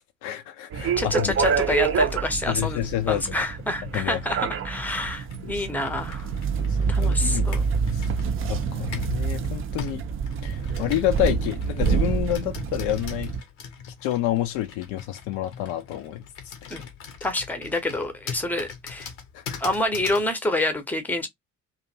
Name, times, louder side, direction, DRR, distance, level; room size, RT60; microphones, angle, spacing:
voice 1, 0.0-1.3 2.5-3.2 3.9-4.2 5.4-5.7 6.6-7.6 7.9-8.1 8.4-10.0 10.4-13.3 14.0-16.2 19.3-19.6, left 13 dB, 50° left, 0.5 m, -28 dB
sound 1, 0.7-13.4, right 6 dB, 35° right, 0.5 m, -27 dB
voice 2, 1.0-2.8 3.1-6.3 6.9-7.6 16.7-16.8 17.2-19.1 19.6-21.3, left 1 dB, 5° left, 0.7 m, -27 dB
Computer keyboard, 1.3-9.2 9.8-20.3, left 6 dB, 70° left, 0.9 m, -42 dB
2.5 x 2.3 x 2.7 m
figure-of-eight pair, 50°, 39 cm